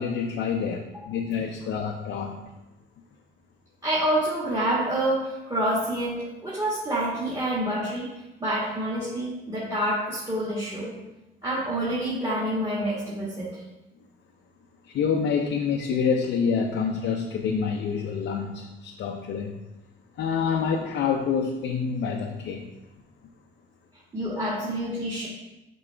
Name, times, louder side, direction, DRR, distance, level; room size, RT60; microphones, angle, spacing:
voice 1, 0.0-2.4 14.9-19.5 20.2-22.7, left 6 dB, 70° left, 2 dB, 0.6 m, -27 dB
voice 2, 3.8-8.0 8.4-10.9 11.4-13.5 24.1-25.3, right 1 dB, 20° right, -8 dB, 1.7 m, -27 dB
6.2 x 4.6 x 3.4 m, 1.0 s
cardioid pair, 90°, 20 cm